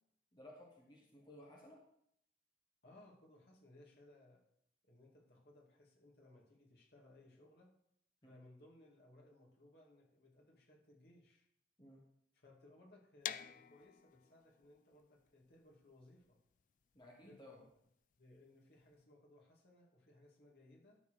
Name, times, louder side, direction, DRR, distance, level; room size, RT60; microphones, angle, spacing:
voice 1, 0.3-1.8 8.2-8.4 11.8-12.0 16.9-17.6, left 1 dB, 25° left, -3 dB, 1.8 m, -58 dB
voice 2, 2.8-4.4 4.8-7.7 8.2-11.5 12.3-16.4 17.2-17.6 18.2-21.0, left 1 dB, 60° left, -2 dB, 2.4 m, -63 dB
sound 1, 13.2-19.0, left 10 dB, 45° left, 0.3 m, -50 dB
12.5 x 4.3 x 6.6 m, 0.72 s
head